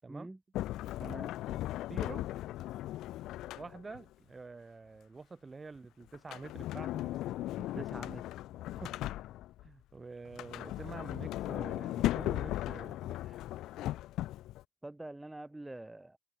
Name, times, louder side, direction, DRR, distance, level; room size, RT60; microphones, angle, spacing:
voice 1, 0.1-0.4 1.0-1.3 7.8-8.2 8.7-8.9 14.8-16.2, right 1 dB, 10° right, 2.2 m, -45 dB
Sliding door, 0.5-4.1 6.1-9.7 10.3-14.6, left 15 dB, 90° left, 2.2 m, -37 dB
voice 2, 1.5-2.3 3.6-7.1 7.6-7.9 8.8-9.1 9.6-13.4, right 4 dB, 30° right, 7.2 m, -48 dB
cardioid pair, 90°, 0 cm